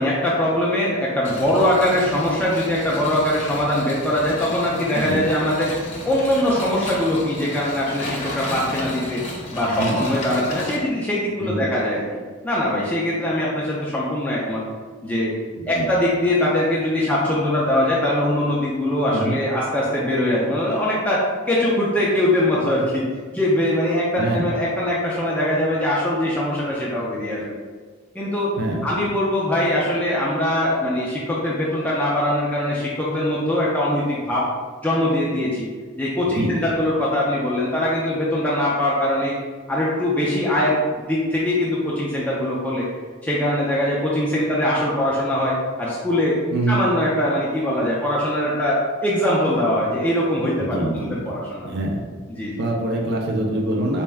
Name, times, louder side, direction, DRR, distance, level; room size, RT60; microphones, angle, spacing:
voice 1, 0.0-5.7 6.0-9.2 9.5-12.1 12.4-14.6 15.0-15.3 15.7-23.1 23.3-27.6 28.1-28.5 28.8-34.5 34.8-35.7 36.0-39.4 39.7-40.8 41.1-42.9 43.2-46.4 46.7-51.7 52.3-52.6, left 1 dB, 5° left, -6 dB, 0.4 m, -22 dB
sound 1, 1.2-10.8, left 1 dB, 35° left, 0.8 m, -33 dB
voice 2, 4.9-5.3 9.7-10.1 11.4-11.6 15.6-15.9 19.1-19.4 24.1-24.5 28.6-28.9 36.2-36.7 46.5-46.8 50.7-51.3 51.6-52.0 52.6-54.0, right 1 dB, 50° right, 0 dB, 0.5 m, -25 dB
4.1 x 2.3 x 3.4 m, 1.5 s
head